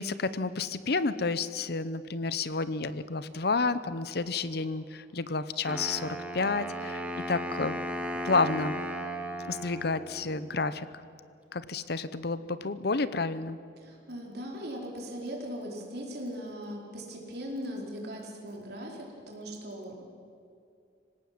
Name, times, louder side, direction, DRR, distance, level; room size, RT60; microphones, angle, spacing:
voice 1, 0.0-7.8 8.2-8.8 9.5-10.9 11.5-13.6, left 3 dB, 60° left, 14 dB, 0.8 m, -30 dB
Wind instrument woodwind instrument, 5.6-10.6, equal, 10° right, 1.8 m, -36 dB
voice 2, 13.8-20.1, equal, 60° right, -1 dB, 4.6 m, -39 dB
25.5 x 17.5 x 7.8 m, 2.5 s
head